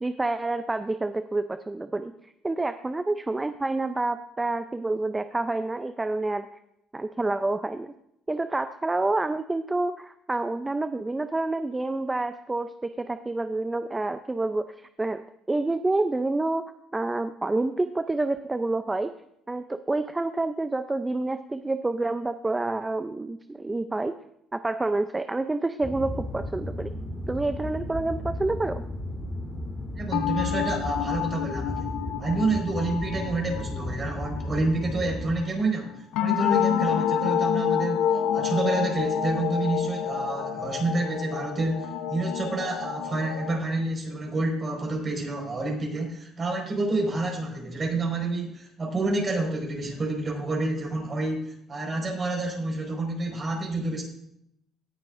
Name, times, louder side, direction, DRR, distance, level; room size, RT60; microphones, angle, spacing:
voice 1, 0.0-6.5 6.9-7.9 8.3-15.2 15.5-16.6 16.9-19.1 19.5-24.1 24.5-26.9 27.3-28.9, right 2 dB, 15° right, 10 dB, 0.5 m, -28 dB
sound 1, 25.8-35.4, left 1 dB, 10° left, 3.5 m, -34 dB
voice 2, 29.9-54.0, right 2 dB, 35° right, 1 dB, 5.0 m, -29 dB
sound 2, 30.1-35.5 36.1-43.6, left 9 dB, 85° left, 0.6 m, -28 dB
17.5 x 9.9 x 2.6 m, 0.78 s
supercardioid pair, 85°, 0 cm